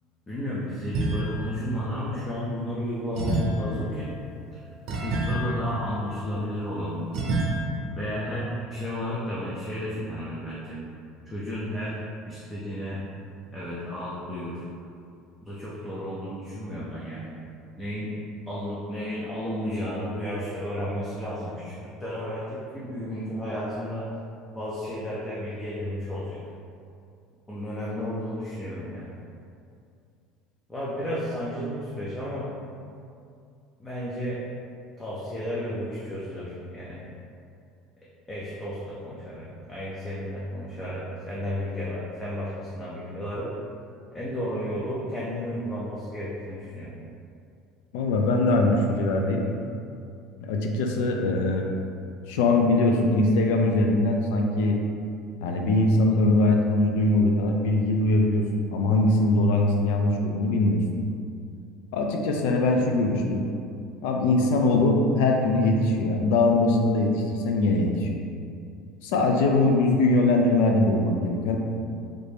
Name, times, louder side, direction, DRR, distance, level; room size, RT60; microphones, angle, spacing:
voice 1, 0.3-4.1 4.5-4.7 5.0-7.1 7.9-10.8 11.3-12.0 12.3-13.0 13.5-14.7 15.4-17.3 17.8-18.2 18.5-24.1 24.6-26.4 27.5-29.1 30.7-32.5 33.8-34.4 35.0-37.0 38.3-43.5 44.1-46.9, equal, 10° left, -8 dB, 0.4 m, -33 dB
sound 1, 0.9-1.6 3.1-6.6 7.1-7.5, right 2 dB, 50° right, 0.7 m, -29 dB
voice 2, 47.9-49.4 50.4-51.6 52.3-54.8 55.4-58.4 58.7-60.8 61.9-63.4 64.0-68.2 69.0-71.6, left 2 dB, 85° left, 2 dB, 0.4 m, -22 dB
3.2 x 2.6 x 3.3 m, 2.5 s
cardioid pair, 170°, 0 cm